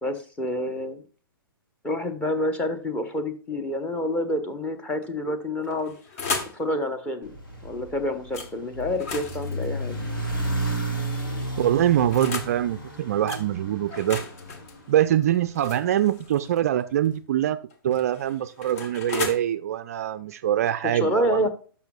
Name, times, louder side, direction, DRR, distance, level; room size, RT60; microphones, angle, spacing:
voice 1, 0.0-1.0 1.8-5.9 6.5-7.3 7.6-10.0 20.9-21.5, left 1 dB, 10° left, 9 dB, 0.9 m, -28 dB
sound 1, 5.6-6.6 8.3-8.5 8.9-10.8 11.6-12.6 13.3-13.4 13.9-16.6 17.7-19.4, left 4 dB, 40° left, 1.2 m, -35 dB
sound 2, 7.2-15.6, right 1 dB, 65° left, 2.1 m, -33 dB
voice 2, 11.6-14.2 14.9-17.6 17.8-21.5, right 11 dB, 40° right, 13 dB, 0.4 m, -24 dB
12.5 x 5.5 x 2.3 m, 0.39 s
figure-of-eight pair, 115°, 12 cm